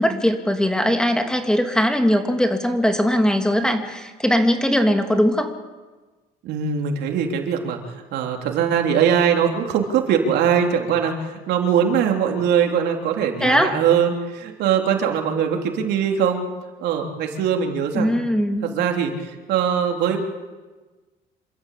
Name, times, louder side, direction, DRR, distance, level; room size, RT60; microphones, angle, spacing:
voice 1, 0.0-5.5 13.4-13.7 17.9-18.7, equal, 5° left, 5 dB, 2.6 m, -20 dB
voice 2, 6.4-16.5 16.8-18.2 18.6-20.2, right 8 dB, 80° right, 3 dB, 3.4 m, -21 dB
28.0 x 13.0 x 8.6 m, 1.3 s
cardioid pair, 110°, 17 cm